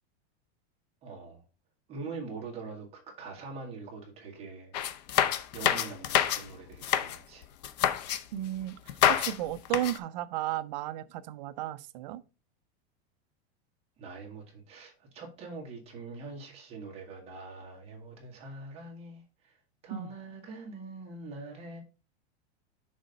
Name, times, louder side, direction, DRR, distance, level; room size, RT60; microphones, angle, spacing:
voice 1, 1.0-1.4 1.9-4.7 5.5-7.5 14.0-19.5 19.8-21.8, right 3 dB, 20° right, 1.6 m, -43 dB
sound 1, 4.7-6.4 6.7-7.2 7.6-8.2 8.9-9.4 9.7-10.0, left 11 dB, 40° left, 0.5 m, -27 dB
voice 2, 8.3-8.7 9.1-12.2 19.9-20.1, right 13 dB, 45° right, 0.5 m, -34 dB
6.4 x 4.1 x 5.1 m
supercardioid pair, 175°, 32 cm